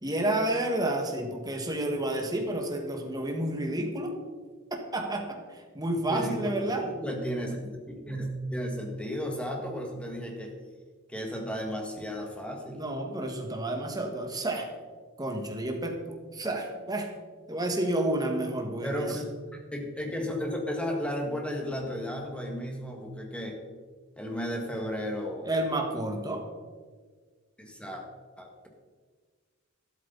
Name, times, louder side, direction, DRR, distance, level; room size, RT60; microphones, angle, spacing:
voice 1, 0.0-4.2 4.7-6.9 12.7-14.7 15.2-17.1 17.5-19.2 25.4-26.5, right 1 dB, 20° right, 3 dB, 1.6 m, -30 dB
voice 2, 6.1-10.5 11.1-12.8 18.8-23.6 24.2-25.5 27.6-28.0 28.4-28.7, equal, 5° left, 1 dB, 1.8 m, -34 dB
12.5 x 12.0 x 4.0 m, 1.5 s
head